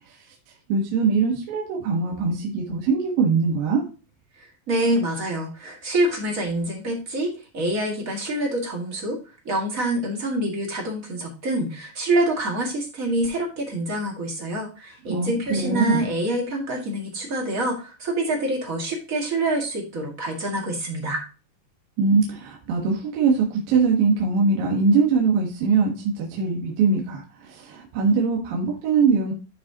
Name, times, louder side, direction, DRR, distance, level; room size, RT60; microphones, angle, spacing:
voice 1, 0.7-3.9 15.1-16.1 22.0-29.3, right 4 dB, 65° right, -1 dB, 2.8 m, -22 dB
voice 2, 4.4-9.2 9.4-21.2, right 1 dB, 30° right, -1 dB, 1.6 m, -26 dB
12.5 x 4.8 x 2.9 m, 0.34 s
omnidirectional pair, 4.7 m